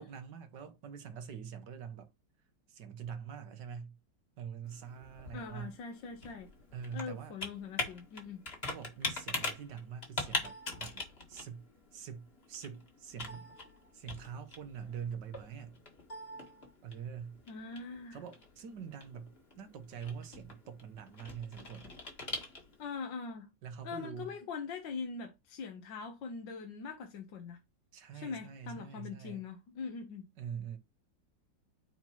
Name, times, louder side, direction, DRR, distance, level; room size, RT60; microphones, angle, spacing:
voice 1, 0.0-2.1 2.7-4.0 4.4-5.7 6.7-7.3 8.6-11.6 11.9-13.5 13.9-15.8 16.8-17.4 18.1-21.9 23.6-24.3 27.9-29.4 30.4-30.8, right 7 dB, 70° right, 1.6 m, -44 dB
Computer keyboard, 4.6-22.9, left 2 dB, 35° left, 1.7 m, -43 dB
voice 2, 5.3-6.5 6.9-8.4 17.5-18.2 22.8-23.5 23.8-27.6 28.1-30.3, left 5 dB, 80° left, 1.7 m, -42 dB
9.3 x 4.4 x 2.9 m
omnidirectional pair, 2.0 m